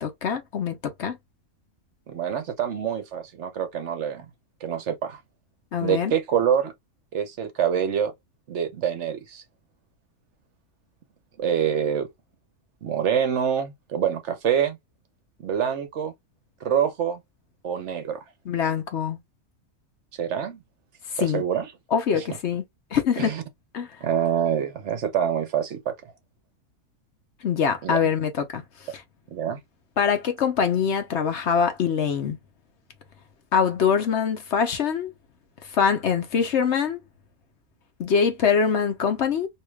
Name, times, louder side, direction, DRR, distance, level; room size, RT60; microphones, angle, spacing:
voice 1, 0.0-1.2 5.7-6.1 18.5-19.2 21.2-21.4 21.9-22.6 22.9-23.3 23.7-23.9 27.4-28.6 30.0-32.4 33.5-35.1 35.7-37.0 38.0-39.5, left 7 dB, 60° left, 0.9 m, -23 dB
voice 2, 2.1-4.3 4.6-5.2 5.8-6.7 7.1-8.1 8.5-9.4 11.4-12.1 12.8-14.8 15.4-16.1 16.6-17.2 17.6-18.2 20.1-20.6 21.2-21.7 22.1-22.2 23.2-23.4 24.0-26.1 27.8-28.0 29.3-29.6, right 8 dB, 60° right, 0.9 m, -26 dB
4.7 x 2.8 x 2.2 m
omnidirectional pair, 1.5 m